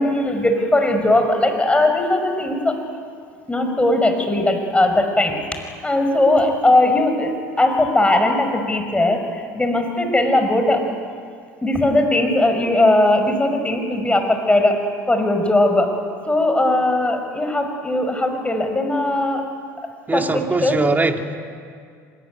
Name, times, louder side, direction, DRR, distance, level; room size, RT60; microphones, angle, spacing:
voice 1, 0.0-2.8 3.5-5.4 5.8-10.9 11.6-16.0 16.3-19.5 20.1-20.8, left 1 dB, 15° left, 5 dB, 5.6 m, -19 dB
voice 2, 20.1-21.4, right 3 dB, 20° right, 5 dB, 2.4 m, -21 dB
25.0 x 22.5 x 9.3 m, 2.2 s
hypercardioid pair, 70°, 9 cm